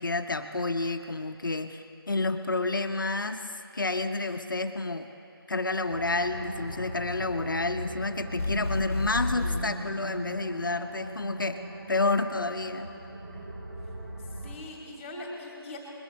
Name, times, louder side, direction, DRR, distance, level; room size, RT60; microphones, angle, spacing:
voice 1, 0.0-3.5 3.7-5.1 5.5-11.6 11.9-12.9, left 3 dB, 55° left, 8 dB, 0.8 m, -29 dB
sound 1, 5.9-14.6, right 1 dB, 50° right, 3.1 m, -40 dB
sound 2, 8.4-9.7, left 2 dB, 35° left, 0.3 m, -30 dB
voice 2, 14.2-15.8, left 2 dB, 15° left, -1 dB, 2.3 m, -42 dB
21.5 x 21.5 x 3.1 m, 3.0 s
figure-of-eight pair, 160°, 13 cm